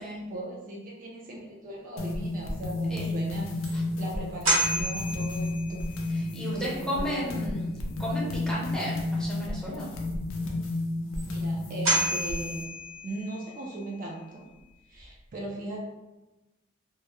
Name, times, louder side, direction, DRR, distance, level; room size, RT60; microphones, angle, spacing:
voice 1, 0.0-5.9 6.5-7.4 11.2-12.7 13.0-14.5 14.9-15.8, right 2 dB, 40° right, -1 dB, 0.3 m, -38 dB
sound 1, 2.0-12.6, left 2 dB, 75° left, 0.4 m, -32 dB
sound 2, 3.0-3.1 3.6-3.7 4.4-6.1 11.2-11.3 11.8-13.5, right 1 dB, 80° right, 1.0 m, -29 dB
voice 2, 6.0-7.7 8.0-9.9, equal, 5° left, -7 dB, 0.6 m, -34 dB
2.2 x 2.0 x 2.8 m, 1.0 s
head